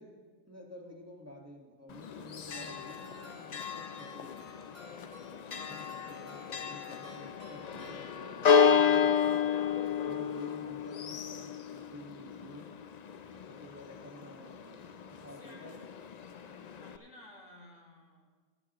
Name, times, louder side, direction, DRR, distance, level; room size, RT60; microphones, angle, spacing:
voice 1, 0.0-4.6 5.2-9.6 10.0-12.8 13.3-15.8, equal, 15° right, -1 dB, 1.4 m, -51 dB
Church bell, 1.9-17.0, left 7 dB, 60° left, 0.4 m, -32 dB
sound 1, 2.5-8.6, left 1 dB, 75° right, 3.7 m, -55 dB
voice 2, 15.2-15.9 16.4-18.3, left 1 dB, 85° left, -1 dB, 2.4 m, -56 dB
17.0 x 12.0 x 3.0 m, 1.5 s
omnidirectional pair, 1.3 m